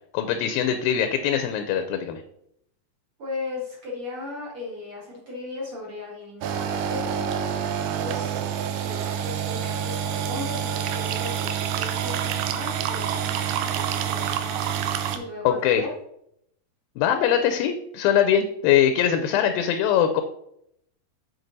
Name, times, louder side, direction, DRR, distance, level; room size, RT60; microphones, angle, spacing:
voice 1, 0.1-2.2 15.4-15.8 17.0-20.2, left 9 dB, 85° left, 7 dB, 2.4 m, -22 dB
voice 2, 3.2-8.4 8.7-14.7 15.1-15.9, left 2 dB, 50° right, -5 dB, 2.0 m, -37 dB
sound 1, 6.4-15.2, right 8 dB, 90° right, 1.6 m, -27 dB
7.3 x 4.9 x 3.9 m, 0.74 s
omnidirectional pair, 4.1 m